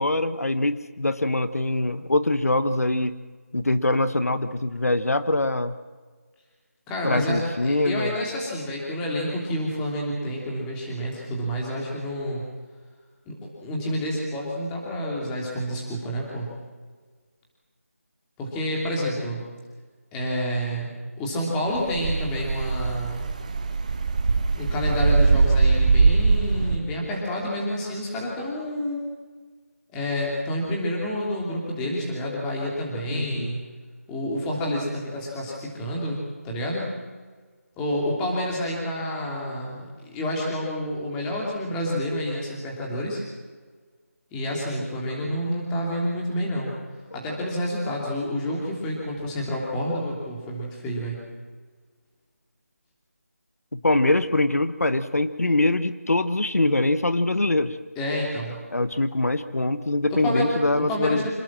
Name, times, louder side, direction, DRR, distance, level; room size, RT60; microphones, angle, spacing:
voice 1, 0.0-3.1 3.5-5.7 7.0-8.1 33.1-33.5 53.7-57.8 58.7-61.3, left 2 dB, 75° left, 12 dB, 1.3 m, -23 dB
voice 2, 6.9-12.5 13.3-16.5 18.4-19.5 20.1-23.2 24.6-29.0 29.9-33.6 34.1-36.2 36.4-36.9 37.8-43.2 44.3-46.7 47.1-51.2 57.9-58.6 60.1-60.5 60.7-61.3, equal, 5° left, -3 dB, 3.2 m, -29 dB
sound 1, 21.7-26.8, right 4 dB, 30° right, 1.4 m, -21 dB
27.0 x 19.0 x 7.6 m, 1.5 s
figure-of-eight pair, 170°, 8 cm